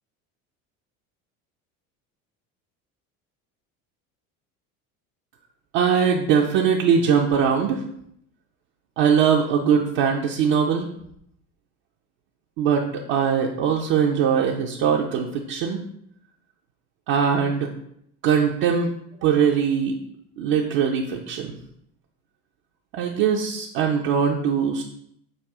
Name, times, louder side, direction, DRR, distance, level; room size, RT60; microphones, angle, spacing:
voice 1, 5.7-7.8 9.0-10.9 12.6-15.8 17.1-17.7 18.2-18.9 19.2-20.0 20.4-21.5 22.9-24.8, right 7 dB, 55° right, -1 dB, 0.7 m, -21 dB
6.3 x 2.3 x 3.5 m, 0.72 s
hypercardioid pair, 80°, 42 cm